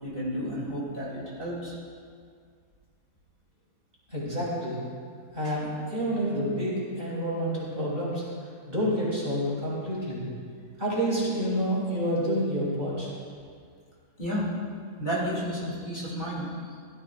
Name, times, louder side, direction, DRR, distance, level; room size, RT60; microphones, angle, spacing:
voice 1, 0.0-1.7 5.4-5.5 14.2-14.5 15.0-16.8, equal, 35° left, -7 dB, 3.3 m, -32 dB
voice 2, 4.1-4.8 5.3-8.2 8.7-10.2 10.8-13.1, equal, 35° right, -8 dB, 4.0 m, -28 dB
16.0 x 14.0 x 2.6 m, 2.1 s
omnidirectional pair, 1.7 m